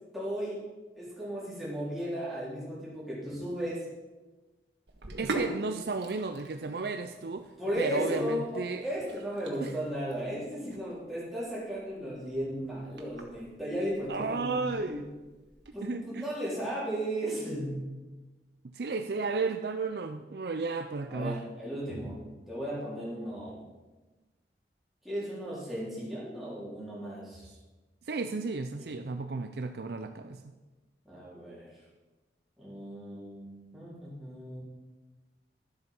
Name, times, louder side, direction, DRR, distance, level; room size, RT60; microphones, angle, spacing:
voice 1, 0.1-0.7 1.0-3.9 7.6-15.0 15.7-17.8 21.1-23.6 25.0-27.6 28.8-29.0 31.1-31.7 32.6-34.6, equal, ahead, -8 dB, 3.6 m, -35 dB
Sink (filling or washing), 4.9-15.7, right 2 dB, 85° right, 1.7 m, -43 dB
voice 2, 5.2-7.5 7.8-8.8 9.6-9.7 14.1-15.1 15.8-16.3 18.7-21.4 28.0-30.4, right 4 dB, 65° right, 7 dB, 0.5 m, -33 dB
12.5 x 8.0 x 5.5 m, 1.2 s
head